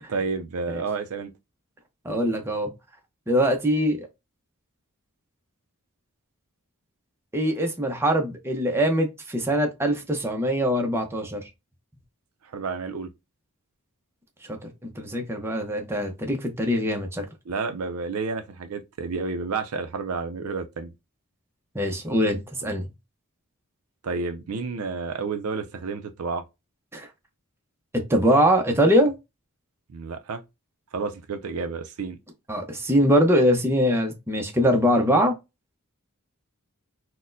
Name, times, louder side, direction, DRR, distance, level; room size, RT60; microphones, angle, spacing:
voice 1, 0.1-1.3 12.4-13.1 17.5-20.9 24.0-26.4 29.9-30.4 30.9-32.2, right 4 dB, 70° right, 0.5 m, -30 dB
voice 2, 2.0-2.7 3.3-4.1 7.3-11.4 14.5-17.2 21.7-22.8 26.9-27.1 27.9-29.1 32.5-35.3, equal, 10° right, 0.6 m, -22 dB
4.1 x 2.1 x 2.5 m
head